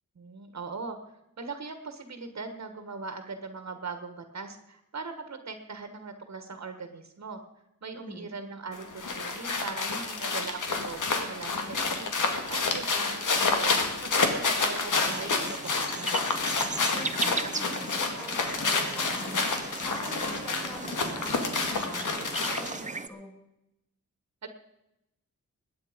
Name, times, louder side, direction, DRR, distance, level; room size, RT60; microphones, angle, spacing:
voice 1, 0.1-7.4 7.8-13.7 14.0-16.2 24.4-24.5, right 4 dB, 60° right, 8 dB, 1.5 m, -40 dB
voice 2, 8.0-8.3 16.9-19.5 19.8-23.3, left 1 dB, 15° left, 0 dB, 5.7 m, -44 dB
sound 1, 8.7-22.8, left 4 dB, 80° left, 2.0 m, -29 dB
sound 2, 14.9-23.1, right 4 dB, 25° right, 0.7 m, -37 dB
21.0 x 9.4 x 5.2 m, 0.87 s
wide cardioid pair, 145°, 31 cm